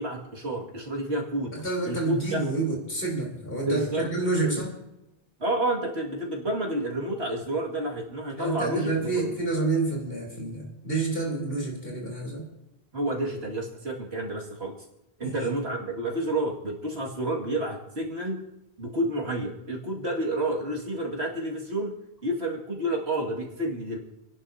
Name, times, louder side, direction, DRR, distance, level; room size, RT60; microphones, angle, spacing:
voice 1, 0.0-1.5 1.8-2.4 3.6-4.1 4.4-4.6 5.4-9.3 12.9-14.7 15.2-18.4 18.8-21.9 22.2-24.0, right 1 dB, 80° right, -2 dB, 2.4 m, -30 dB
voice 2, 1.5-4.7 8.4-12.4 15.2-15.5, right 3 dB, 65° left, -1 dB, 3.8 m, -29 dB
28.5 x 11.0 x 2.7 m, 0.92 s
omnidirectional pair, 1.0 m